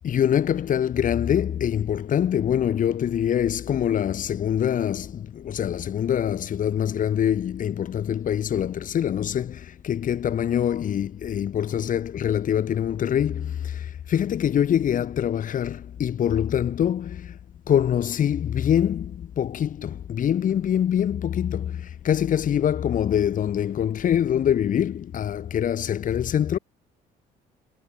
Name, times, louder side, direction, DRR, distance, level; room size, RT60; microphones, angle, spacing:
voice 1, 0.0-17.3 17.7-26.6, left 9 dB, 50° left, 4.6 m, -24 dB
cardioid pair, 110°, 17 cm